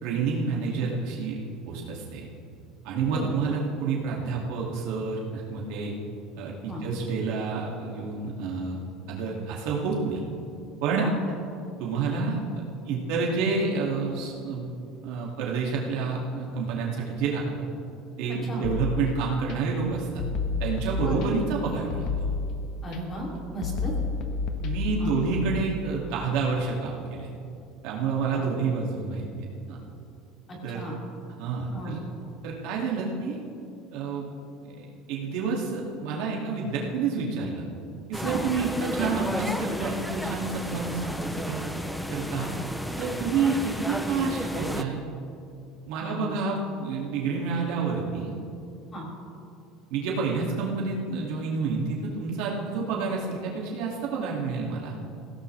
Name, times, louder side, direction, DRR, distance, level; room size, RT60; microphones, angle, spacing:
voice 1, 0.0-2.3 2.8-5.9 6.4-8.8 9.1-10.2 10.8-11.1 11.8-14.7 15.0-17.7 18.2-20.2 20.6-22.2 24.6-27.3 27.8-29.3 29.7-29.8 30.6-31.0 31.4-32.0 32.4-33.4 33.9-34.3 34.6-37.6 38.1-41.6 42.1-42.5 43.0-45.0 45.9-48.3 49.9-55.0, right 4 dB, 60° right, -2 dB, 2.4 m, -29 dB
sound 1, 18.6-19.5 20.2-21.5 21.9-23.0 23.6-25.5, left 4 dB, 45° left, 1.3 m, -30 dB
voice 2, 22.8-23.9 25.0-25.2 28.3-28.4 30.5-31.0 31.7-32.0 38.3-38.4 42.4-42.5 46.0-46.4 48.9-49.0, equal, 20° left, -2 dB, 3.0 m, -36 dB
sound 2, 38.1-44.8, equal, ahead, 0.6 m, -32 dB
21.0 x 16.5 x 3.4 m, 2.6 s
cardioid pair, 175°, 0 cm